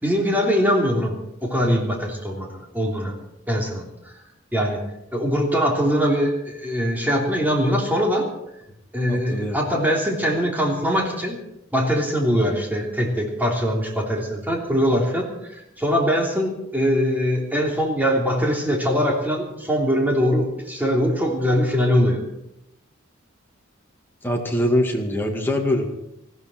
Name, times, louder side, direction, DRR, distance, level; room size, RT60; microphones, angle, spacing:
voice 1, 0.0-1.2 1.4-3.1 3.5-4.1 4.5-4.8 5.1-8.3 8.9-11.4 11.7-22.2, equal, 10° right, 0 dB, 3.2 m, -22 dB
voice 2, 9.1-9.6 24.2-25.9, left 1 dB, 10° left, 0 dB, 2.2 m, -23 dB
19.5 x 15.0 x 4.5 m, 0.85 s
head